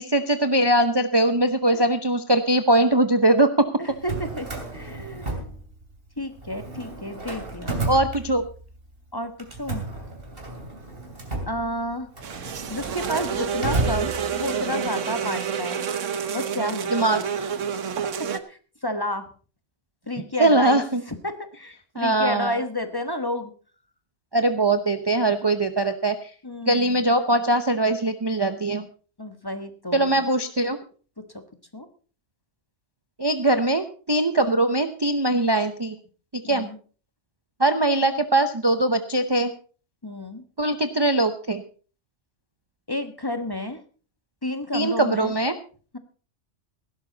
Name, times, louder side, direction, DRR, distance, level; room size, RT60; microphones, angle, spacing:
voice 1, 0.0-3.7 7.8-8.4 16.9-17.2 20.4-21.0 22.0-22.6 24.3-26.3 26.7-28.8 29.9-30.8 33.2-36.0 36.3-36.7 37.6-39.5 40.6-41.6 44.7-45.5, right 1 dB, 25° right, 8 dB, 0.7 m, -21 dB
voice 2, 3.8-5.4 6.2-7.8 9.1-9.8 11.5-12.1 12.7-15.8 16.3-17.2 18.2-19.3 20.1-20.8 21.2-23.5 26.4-27.0 29.2-30.2 31.2-31.4 31.7-31.9 36.4-36.8 40.0-40.4 42.9-43.8 44.4-45.3, left 1 dB, 20° left, 8 dB, 1.2 m, -31 dB
Drawer open or close, 3.9-6.1 6.4-8.8 9.4-14.7, right 2 dB, 50° right, 3.0 m, -32 dB
sound 1, 12.2-18.4, right 7 dB, 80° right, 1.3 m, -29 dB
16.5 x 12.0 x 4.0 m, 0.39 s
omnidirectional pair, 1.3 m